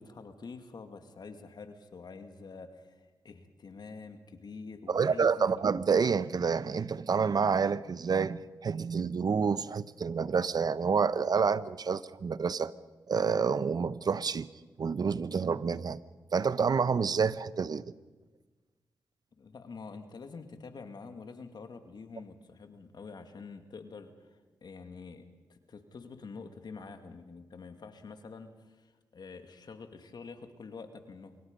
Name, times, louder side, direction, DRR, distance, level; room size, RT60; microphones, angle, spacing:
voice 1, 0.0-5.7 19.4-31.4, left 4 dB, 60° left, 7 dB, 2.3 m, -47 dB
voice 2, 4.9-12.7 13.1-14.5 14.8-16.0 16.3-17.8, right 5 dB, 55° right, 17 dB, 0.9 m, -28 dB
26.0 x 23.0 x 5.4 m, 1.3 s
supercardioid pair, 45°, 8 cm